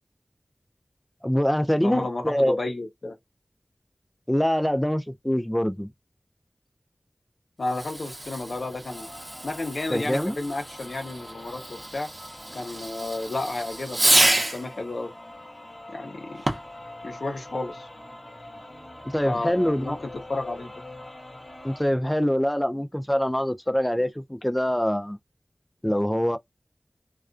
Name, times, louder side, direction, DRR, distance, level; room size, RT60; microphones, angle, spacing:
voice 1, 1.2-2.6 4.3-5.9 9.9-10.4 19.1-20.0 21.6-25.2 25.8-26.4, equal, 10° left, 0.4 m, -24 dB
voice 2, 1.8-3.2 7.6-9.1 9.4-12.1 12.5-15.1 15.9-16.4 17.0-17.9 19.2-20.7, left 2 dB, 90° left, 0.7 m, -32 dB
Fireworks, 7.6-14.7 16.4-16.8, right 1 dB, 45° right, 0.7 m, -28 dB
sound 1, 8.9-21.8, left 1 dB, 30° left, 0.7 m, -44 dB
2.3 x 2.3 x 2.4 m
wide cardioid pair, 60°, 0 cm